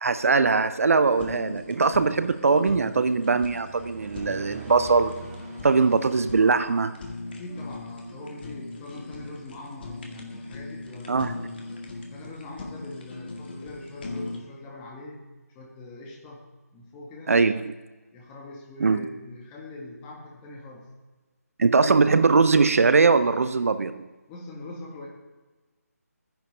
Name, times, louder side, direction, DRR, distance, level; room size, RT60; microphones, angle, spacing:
voice 1, 0.0-5.3 5.6-6.9 11.1-11.3 17.3-17.7 18.8-19.0 21.6-24.0, right 4 dB, 60° right, 12 dB, 0.6 m, -21 dB
Fire, 1.1-14.4, left 2 dB, 40° left, 1.9 m, -40 dB
sound 1, 3.4-7.2, right 5 dB, 15° right, 1.4 m, -44 dB
voice 2, 7.3-11.5 12.1-15.3 15.5-16.4 16.7-17.3 18.1-20.9 24.3-25.1, left 2 dB, 15° left, -1 dB, 1.9 m, -42 dB
13.0 x 10.0 x 5.4 m, 1.3 s
figure-of-eight pair, 155°, 9 cm